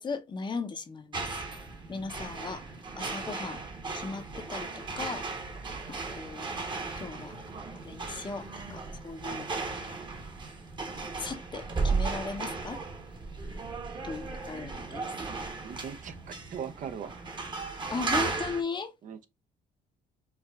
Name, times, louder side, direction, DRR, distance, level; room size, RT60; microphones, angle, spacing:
voice 1, 0.0-1.4 1.9-2.6 3.0-3.6 3.9-5.3 5.9-6.5 7.0-7.3 7.8-9.5 11.2-12.8 14.0-15.1 17.9-18.9, left 4 dB, 25° left, 0.6 m, -37 dB
sound 1, 1.1-18.6, right 4 dB, 25° right, 1.0 m, -36 dB
voice 2, 15.6-17.2 19.0-19.3, right 8 dB, 50° right, 0.6 m, -40 dB
4.6 x 2.4 x 2.3 m
cardioid pair, 110°, 17 cm